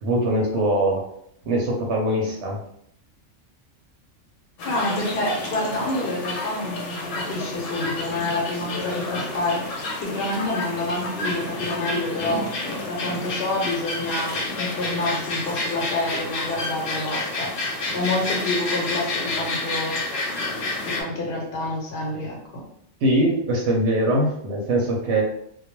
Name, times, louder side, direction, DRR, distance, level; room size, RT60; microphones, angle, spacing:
voice 1, 0.0-1.0 1.5-2.6 23.0-25.2, right 1 dB, 65° right, -2 dB, 0.8 m, -22 dB
sound 1, 4.6-21.0, left 2 dB, 80° left, 1.0 m, -30 dB
voice 2, 4.6-12.5 12.9-17.5 17.9-20.0 20.8-22.6, left 2 dB, 55° left, -2 dB, 0.9 m, -28 dB
2.2 x 2.1 x 2.9 m, 0.71 s
omnidirectional pair, 1.3 m